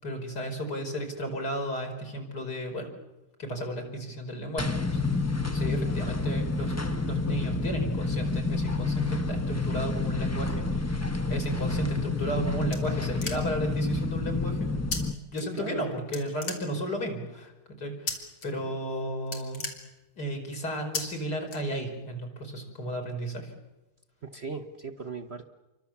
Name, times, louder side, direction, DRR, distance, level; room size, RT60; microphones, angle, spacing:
voice 1, 0.0-2.9 3.4-5.0 5.5-14.7 15.3-17.5 17.8-19.6 20.2-23.5, equal, 60° left, 4 dB, 5.4 m, -34 dB
sound 1, 4.6-15.1, left 3 dB, 15° left, 0.5 m, -29 dB
sound 2, 12.0-13.7 14.9-15.0 15.3-15.8 16.1-17.1 18.1-18.5 18.8-18.9 19.2-20.4 20.9-21.0 21.5-22.1, left 3 dB, 90° left, 4.2 m, -36 dB
voice 2, 15.5-15.9 24.2-25.4, right 4 dB, 40° right, 8 dB, 1.2 m, -37 dB
29.5 x 24.0 x 7.3 m, 1.1 s
omnidirectional pair, 2.0 m